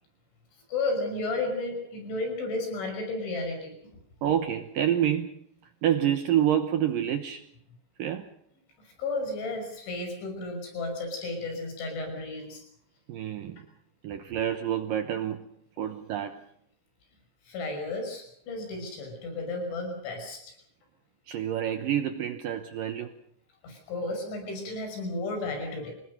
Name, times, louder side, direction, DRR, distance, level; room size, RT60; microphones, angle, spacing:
voice 1, 0.7-4.0 8.8-12.6 17.5-20.6 23.6-25.9, left 2 dB, 75° left, 4 dB, 8.1 m, -33 dB
voice 2, 4.2-5.4 5.8-7.4 8.0-8.3 13.1-13.7 14.0-15.5 15.8-16.4 21.3-23.1, right 10 dB, 75° right, 8 dB, 2.1 m, -28 dB
26.0 x 20.0 x 6.7 m, 0.70 s
omnidirectional pair, 5.4 m